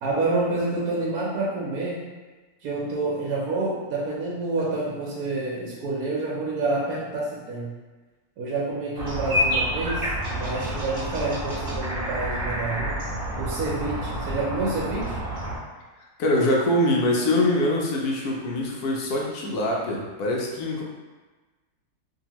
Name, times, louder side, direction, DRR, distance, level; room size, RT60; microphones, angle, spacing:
voice 1, 0.0-2.0 2.6-7.7 8.4-12.9 13.4-15.2, right 3 dB, 75° right, -5 dB, 1.1 m, -28 dB
sound 1, 8.9-15.6, equal, 50° right, 1.0 m, -28 dB
voice 2, 16.2-20.8, left 1 dB, 75° left, -2 dB, 1.1 m, -23 dB
2.8 x 2.7 x 2.9 m, 1.3 s
omnidirectional pair, 1.7 m